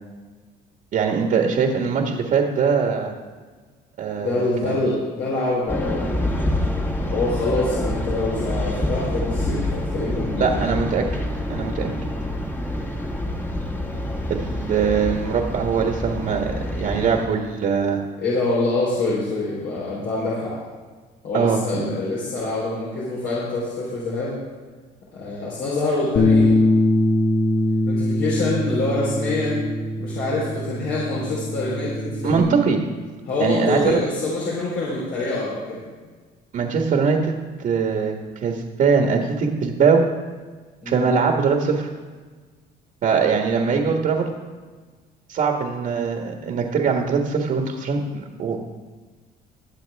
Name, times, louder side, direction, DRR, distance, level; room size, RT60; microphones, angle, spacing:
voice 1, 0.9-3.1 4.0-4.8 10.4-11.1 11.5-11.9 14.3-18.0 21.3-21.9 32.2-32.8 33.4-34.0 36.5-38.1 38.4-40.0 40.8-41.9 43.0-44.3 45.3-48.7, right 5 dB, 55° right, 2 dB, 1.6 m, -22 dB
voice 2, 4.2-6.5 7.1-10.6 18.2-20.5 21.2-24.4 25.1-26.7 27.9-29.7 30.0-32.6 33.3-35.8 40.8-41.1 43.5-43.6, left 2 dB, 80° left, -7 dB, 4.0 m, -25 dB
sound 1, 5.7-17.3, left 1 dB, 10° left, 1.5 m, -27 dB
Bass guitar, 26.2-32.4, left 1 dB, 55° left, 1.6 m, -22 dB
21.5 x 7.8 x 3.6 m, 1.4 s
cardioid pair, 110°, 17 cm